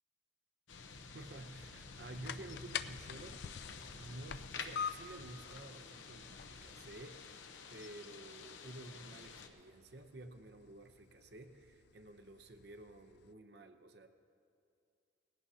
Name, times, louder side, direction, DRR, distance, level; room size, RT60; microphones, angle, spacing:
sound 1, 0.7-9.5, left 5 dB, 85° left, 0.9 m, -50 dB
voice 1, 1.1-3.7 3.9-7.2 7.7-14.1, right 1 dB, 60° right, 7 dB, 0.8 m, -52 dB
sound 2, 1.8-13.3, left 7 dB, 55° left, 0.3 m, -49 dB
19.5 x 16.0 x 2.8 m, 2.4 s
head